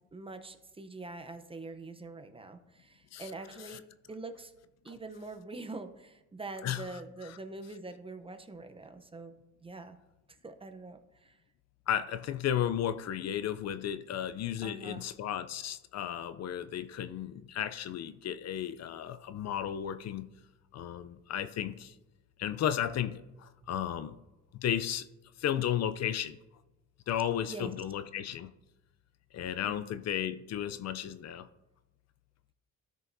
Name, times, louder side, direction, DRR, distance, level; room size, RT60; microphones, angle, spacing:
voice 1, 0.1-3.8 4.1-4.5 4.8-10.0 10.4-11.4 14.6-15.1 23.6-23.7 27.4-27.7 29.6-29.9, right 3 dB, 20° right, 8 dB, 0.7 m, -44 dB
voice 2, 11.9-20.3 20.7-21.9 22.4-24.2 24.5-25.1 25.4-26.4 27.1-28.5 29.3-31.5, left 10 dB, 60° left, 13 dB, 0.5 m, -34 dB
13.0 x 5.0 x 2.6 m, 1.0 s
cardioid pair, 90°, 30 cm